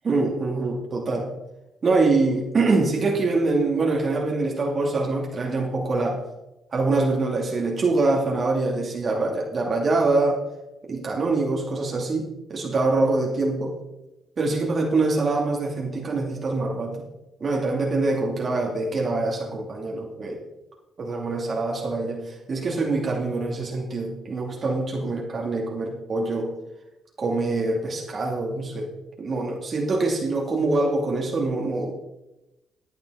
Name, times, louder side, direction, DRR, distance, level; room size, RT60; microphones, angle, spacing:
voice 1, 0.0-1.3 1.8-6.2 6.7-10.4 10.9-13.7 14.4-17.1 17.4-20.4 21.0-26.5 27.2-28.9 29.2-31.9, right 3 dB, 45° right, -1 dB, 2.6 m, -24 dB
14.5 x 9.2 x 4.1 m, 0.94 s
cardioid pair, 90°, 0 cm